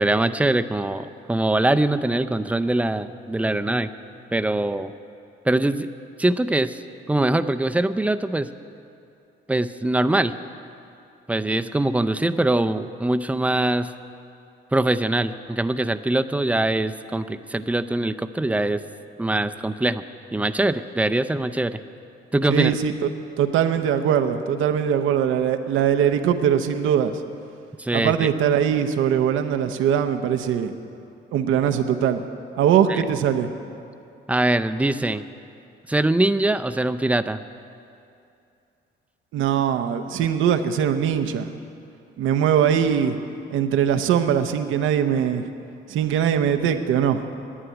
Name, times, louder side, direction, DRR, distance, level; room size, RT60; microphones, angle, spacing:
voice 1, 0.0-3.9 4.3-4.9 5.5-5.9 6.2-6.8 7.1-8.5 9.5-10.4 11.3-13.9 14.7-18.8 19.2-20.0 20.3-21.8 22.3-22.7 27.8-28.3 32.9-33.0 34.3-35.2 35.9-37.4, right 1 dB, 5° right, 10 dB, 0.5 m, -22 dB
voice 2, 22.5-23.1 23.4-27.2 27.9-30.7 31.3-32.2 32.6-33.5 39.3-41.5 42.2-43.2 43.5-45.5 45.9-47.2, right 8 dB, 85° right, 8 dB, 0.8 m, -21 dB
11.0 x 9.0 x 9.9 m, 2.6 s
cardioid pair, 90°, 20 cm